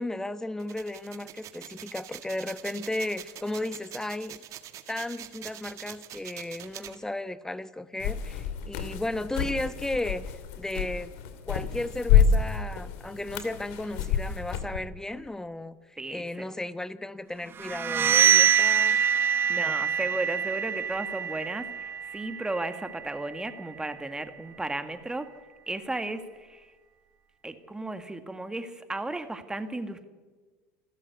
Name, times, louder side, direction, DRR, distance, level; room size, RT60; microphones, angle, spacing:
voice 1, 0.0-4.4 4.9-10.3 10.6-11.1 11.5-19.0 19.5-19.7, left 1 dB, 10° left, 14 dB, 1.1 m, -34 dB
sound 1, 0.6-7.0, right 12 dB, 50° right, 2.0 m, -44 dB
sound 2, 8.0-14.8, left 7 dB, 70° left, 2.6 m, -28 dB
voice 2, 16.0-16.5 19.5-25.3 25.7-26.7 27.4-30.0, right 2 dB, 10° right, 9 dB, 1.7 m, -34 dB
sound 3, 17.6-23.2, right 8 dB, 35° right, 1.2 m, -25 dB
27.5 x 13.5 x 8.2 m, 1.4 s
hypercardioid pair, 85°, 7 cm